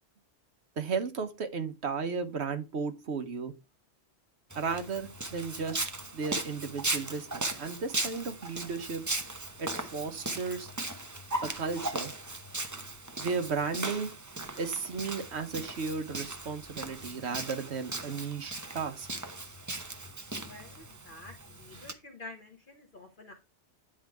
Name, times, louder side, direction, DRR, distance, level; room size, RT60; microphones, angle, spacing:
voice 1, 0.8-3.5 4.5-9.0 9.6-10.7 11.4-12.1 13.2-14.1 14.6-19.1, right 5 dB, 65° right, 8 dB, 1.3 m, -34 dB
Walk footsteps, 4.5-21.9, right 2 dB, 20° right, 0.7 m, -38 dB
voice 2, 20.5-23.3, left 2 dB, 45° left, 4 dB, 1.2 m, -49 dB
9.9 x 3.8 x 4.7 m, 0.27 s
omnidirectional pair, 1.2 m